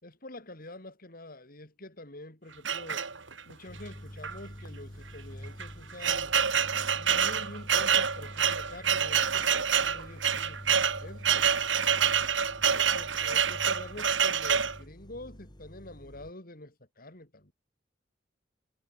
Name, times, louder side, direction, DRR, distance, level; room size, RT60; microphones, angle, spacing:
voice 1, 0.0-3.1 3.5-6.3 6.9-11.5 12.7-17.5, left 1 dB, 50° left, 5.0 m, -47 dB
sound 1, 2.7-3.5 4.2-4.4 4.7-4.8 5.4-14.8, right 7 dB, 75° right, 3.2 m, -27 dB
sound 2, 3.7-16.3, equal, 20° left, 3.1 m, -47 dB
head